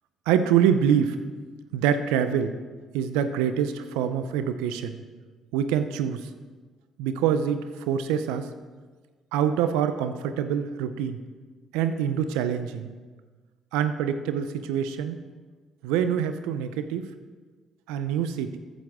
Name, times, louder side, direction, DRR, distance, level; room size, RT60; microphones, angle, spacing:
voice 1, 0.3-1.2 1.7-2.5 2.9-5.0 5.5-6.3 7.0-8.5 9.3-11.2 11.7-12.9 13.7-15.2 15.8-17.1 17.9-18.6, right 8 dB, 80° right, 10 dB, 0.5 m, -25 dB
14.0 x 9.2 x 3.6 m, 1.4 s
hypercardioid pair, 55°, 0 cm